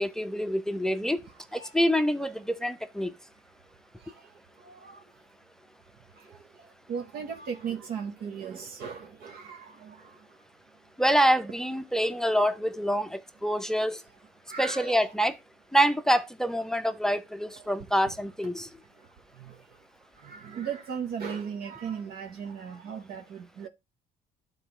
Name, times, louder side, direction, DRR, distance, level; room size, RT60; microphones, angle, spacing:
voice 1, 0.0-1.2 1.5-3.1 11.0-14.0 14.6-15.3 15.7-18.7, equal, 5° left, 0.6 m, -26 dB
voice 2, 1.2-1.9 3.3-5.4 5.9-10.9 11.9-12.4 13.9-14.0 14.4-15.1 17.5-17.9 18.7-23.7, right 7 dB, 60° right, 1.0 m, -39 dB
11.5 x 4.0 x 3.0 m
cardioid pair, 110°, 17 cm